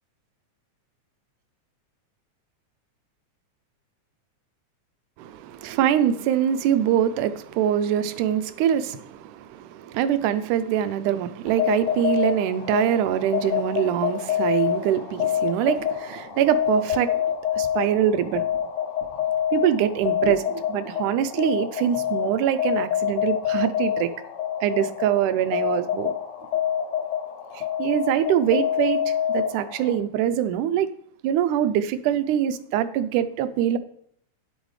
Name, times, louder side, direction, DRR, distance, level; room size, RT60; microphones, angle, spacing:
voice 1, 5.2-17.2 17.5-18.5 19.5-24.1 24.6-26.1 27.5-30.9 31.2-33.8, right 10 dB, 90° right, 12 dB, 2.1 m, -24 dB
sound 1, 11.5-30.0, left 9 dB, 80° left, 2.4 m, -27 dB
9.8 x 8.0 x 3.2 m, 0.65 s
omnidirectional pair, 3.5 m